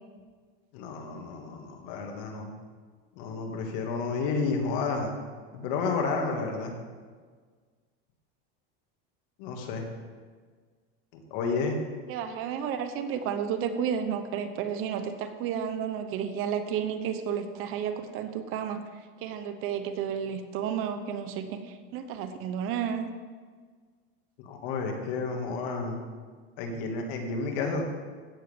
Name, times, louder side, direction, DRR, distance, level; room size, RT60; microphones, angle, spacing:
voice 1, 0.7-2.5 3.2-5.1 5.5-6.7 9.4-9.8 11.3-11.8 24.4-26.0 26.6-27.8, left 4 dB, 65° left, 2 dB, 2.2 m, -31 dB
voice 2, 12.1-18.8 19.2-23.1, right 8 dB, 45° right, 8 dB, 0.9 m, -32 dB
15.5 x 7.5 x 3.6 m, 1.5 s
supercardioid pair, 145°, 30 cm